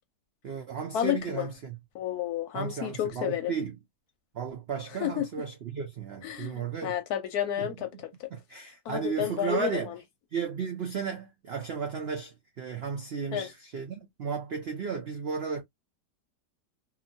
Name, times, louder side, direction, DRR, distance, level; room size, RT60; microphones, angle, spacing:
voice 1, 0.4-1.8 2.5-3.8 4.3-6.9 7.6-7.8 8.3-9.9 10.3-15.6, right 6 dB, 80° right, 0.5 m, -34 dB
voice 2, 0.9-1.5 1.9-3.5 5.0-5.3 6.2-8.3 8.9-10.0 13.3-13.5, left 11 dB, 75° left, 1.0 m, -31 dB
2.9 x 2.5 x 2.5 m
omnidirectional pair, 1.9 m